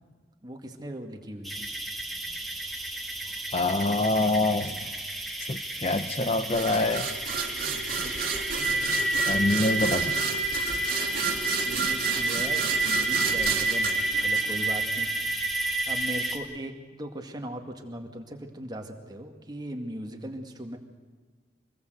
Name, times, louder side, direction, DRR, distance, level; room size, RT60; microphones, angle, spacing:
voice 1, 0.4-1.7 11.6-20.8, equal, 25° right, 3 dB, 2.2 m, -39 dB
sound 1, 1.4-16.4, right 2 dB, ahead, 2.2 m, -30 dB
voice 2, 3.5-4.8 5.5-7.1 9.3-10.2, left 2 dB, 35° left, 10 dB, 0.7 m, -25 dB
sound 2, 6.5-15.0, right 6 dB, 55° right, 2.5 m, -32 dB
25.5 x 19.5 x 8.1 m, 1.4 s
head